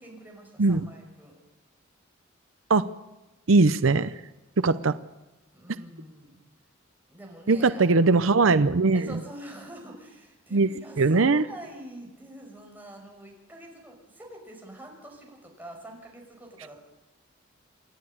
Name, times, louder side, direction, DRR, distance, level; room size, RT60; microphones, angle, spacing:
voice 1, 0.0-1.3 5.5-6.4 7.1-8.4 8.9-16.8, right 1 dB, 10° right, 0 dB, 5.7 m, -45 dB
voice 2, 3.5-4.1 4.6-4.9 7.5-9.0 10.5-10.7 11.0-11.4, right 3 dB, 80° right, 13 dB, 0.7 m, -20 dB
28.0 x 11.0 x 9.9 m, 1.1 s
head